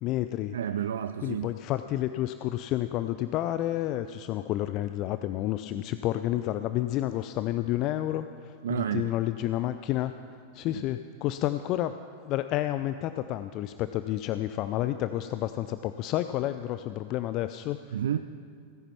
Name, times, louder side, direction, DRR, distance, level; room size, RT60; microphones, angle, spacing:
voice 1, 0.0-0.6 1.2-10.1 10.5-11.9 12.3-18.0, left 14 dB, 40° left, 11 dB, 0.4 m, -30 dB
voice 2, 0.5-1.5 8.6-9.1 10.7-10.8 17.9-18.2, right 9 dB, 65° right, 10 dB, 0.4 m, -30 dB
17.0 x 10.0 x 5.7 m, 2.2 s
figure-of-eight pair, 90°, 0 cm